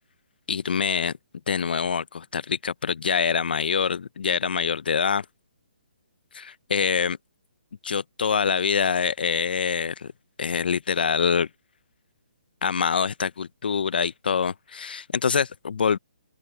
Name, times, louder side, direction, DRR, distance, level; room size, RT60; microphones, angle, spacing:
voice 1, 0.5-1.1 1.5-5.2 6.3-7.2 7.8-10.1 10.4-11.5 12.6-16.0, left 6 dB, 70° left, 0.5 m, -25 dB
open air
hypercardioid pair, 165°, 5 cm